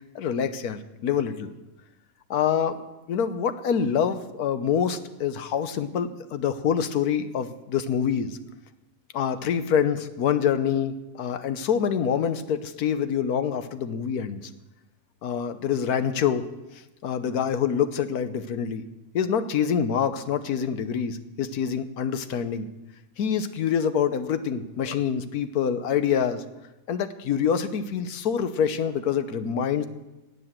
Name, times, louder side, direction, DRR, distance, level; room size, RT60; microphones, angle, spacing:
voice 1, 0.0-1.5 2.3-2.8 3.1-8.4 9.1-14.5 15.2-16.5 17.0-18.8 19.1-22.7 23.2-26.4 26.9-29.9, left 7 dB, 80° left, 11 dB, 1.3 m, -26 dB
18.0 x 6.9 x 7.4 m, 1.0 s
omnidirectional pair, 1.6 m